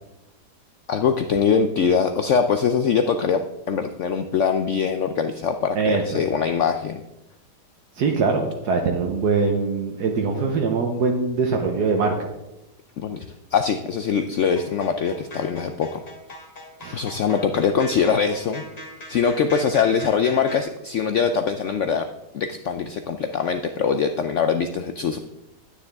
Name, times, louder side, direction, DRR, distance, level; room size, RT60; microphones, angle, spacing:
voice 1, 0.9-3.4 3.7-7.0 13.0-13.2 13.5-16.0 16.9-18.6 19.1-22.1 22.3-25.2, left 6 dB, 75° left, 7 dB, 0.7 m, -22 dB
voice 2, 5.8-6.2 8.0-12.1 16.8-17.0, right 4 dB, 70° right, 1 dB, 1.4 m, -22 dB
sound 1, 14.5-20.6, left 1 dB, 25° left, 1.3 m, -40 dB
9.7 x 9.5 x 3.5 m, 0.95 s
omnidirectional pair, 1.8 m